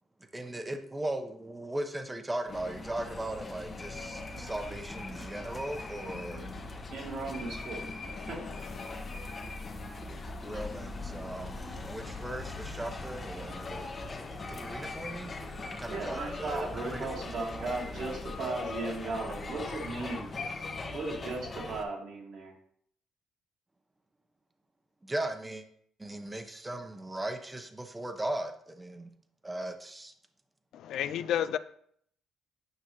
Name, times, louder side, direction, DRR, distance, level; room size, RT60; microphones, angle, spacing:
voice 1, 0.3-6.5 10.4-13.9 14.5-15.3 15.7-17.1 25.0-25.6 26.0-29.1 29.4-30.1, right 1 dB, 20° right, 6 dB, 1.0 m, -38 dB
sound 1, 2.5-21.8, left 3 dB, 40° left, 1.3 m, -41 dB
sound 2, 3.0-20.1, left 3 dB, 25° left, 1.6 m, -47 dB
voice 2, 6.9-7.9 8.3-8.5 15.9-20.4 20.9-22.5, right 3 dB, 65° right, -1 dB, 2.1 m, -36 dB
voice 3, 30.7-31.6, left 10 dB, 70° left, 13 dB, 0.4 m, -32 dB
9.4 x 5.5 x 3.1 m, 0.65 s
supercardioid pair, 65°, 0 cm